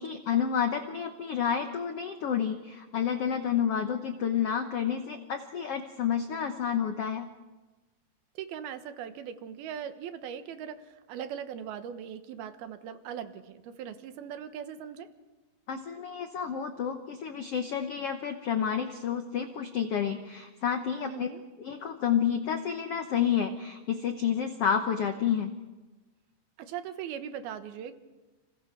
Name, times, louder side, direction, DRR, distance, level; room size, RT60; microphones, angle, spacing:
voice 1, 0.0-7.3 15.7-21.3 21.6-25.5, left 8 dB, 90° left, 7 dB, 1.3 m, -30 dB
voice 2, 8.3-15.1 21.0-21.4 26.6-28.0, right 9 dB, 90° right, 9 dB, 3.2 m, -40 dB
29.5 x 27.0 x 4.6 m, 1.2 s
omnidirectional pair, 4.3 m